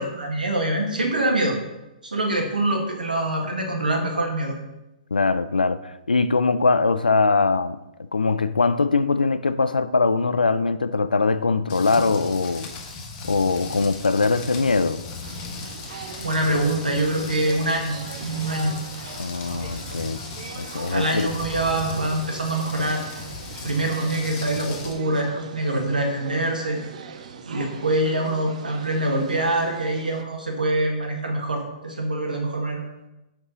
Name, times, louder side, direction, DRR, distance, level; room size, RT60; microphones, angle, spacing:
voice 1, 0.0-1.6 2.0-4.5 16.2-18.7 20.9-23.0 23.6-26.8 27.5-32.8, right 1 dB, 80° right, 1.7 m, -24 dB
voice 2, 5.1-7.8 8.1-12.7 13.3-15.0 19.2-20.2 20.6-21.3, left 4 dB, 80° left, 0.4 m, -22 dB
Rain, 11.7-24.9, left 4 dB, 30° left, 1.4 m, -37 dB
sound 1, 15.2-30.2, right 6 dB, 55° right, 0.6 m, -40 dB
7.1 x 5.4 x 3.9 m
figure-of-eight pair, 120°, 5 cm